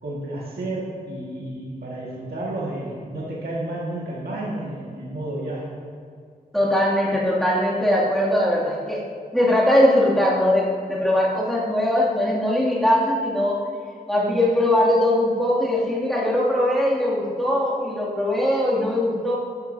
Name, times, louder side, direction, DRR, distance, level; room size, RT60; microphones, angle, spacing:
voice 1, 0.0-5.7, right 1 dB, 85° right, -6 dB, 1.9 m, -31 dB
voice 2, 6.5-9.1 9.3-13.6 14.1-19.3, left 1 dB, ahead, -7 dB, 2.6 m, -21 dB
14.0 x 10.5 x 2.8 m, 2.2 s
wide cardioid pair, 140°, 16 cm